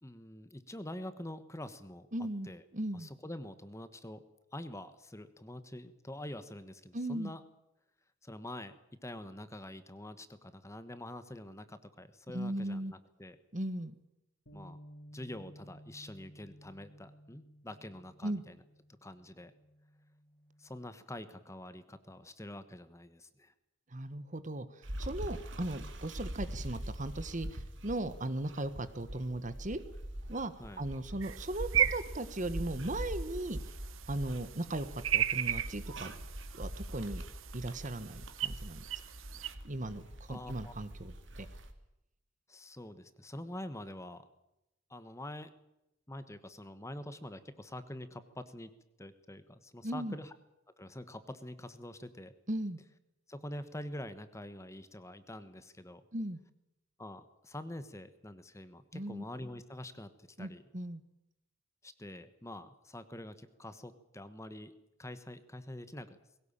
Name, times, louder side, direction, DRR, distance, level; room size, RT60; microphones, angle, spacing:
voice 1, 0.0-2.1 2.4-2.6 2.9-4.2 4.5-7.4 8.2-8.8 9.0-13.4 14.5-14.8 15.1-18.6 19.0-19.5 20.6-23.5 30.6-30.8 40.3-40.7 42.5-44.3 44.9-45.5 46.1-48.7 49.0-50.3 50.8-52.3 53.3-56.0 57.0-60.6 61.8-64.7 65.0-66.2, left 1 dB, 15° left, 12 dB, 1.3 m, -46 dB
voice 2, 2.1-2.5 2.7-3.1 6.9-7.3 12.3-12.9 13.5-13.9 18.2-18.4 23.9-24.7 25.0-29.8 30.3-30.5 30.8-33.6 34.1-36.1 36.5-37.2 37.5-38.8 39.7-40.0 40.3-41.5 49.8-50.2 52.5-52.8 56.1-56.4 58.9-59.2 60.4-61.0, right 1 dB, 40° right, 13 dB, 1.4 m, -37 dB
Bass guitar, 14.5-20.7, equal, 65° left, 3.8 m, -56 dB
sound 1, 24.8-41.7, equal, 65° right, 2.5 m, -43 dB
sound 2, 31.2-39.5, right 10 dB, 85° right, 1.0 m, -36 dB
21.0 x 18.0 x 8.9 m, 0.89 s
head